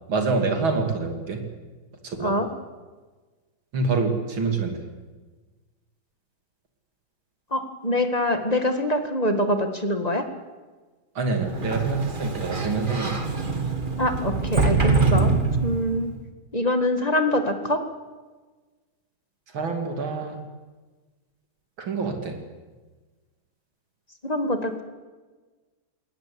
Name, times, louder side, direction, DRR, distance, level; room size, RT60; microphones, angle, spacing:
voice 1, 0.1-1.4 2.0-2.3 3.7-4.8 11.2-13.2 19.5-20.4 21.8-22.4, right 4 dB, 70° right, 4 dB, 3.5 m, -26 dB
voice 2, 7.5-10.2 14.0-15.4 15.6-16.1 16.5-17.8 24.2-24.8, left 1 dB, 20° left, 7 dB, 1.6 m, -24 dB
Sliding door, 11.4-16.1, right 4 dB, 25° right, 1.8 m, -24 dB
20.0 x 19.0 x 8.6 m, 1.3 s
omnidirectional pair, 2.3 m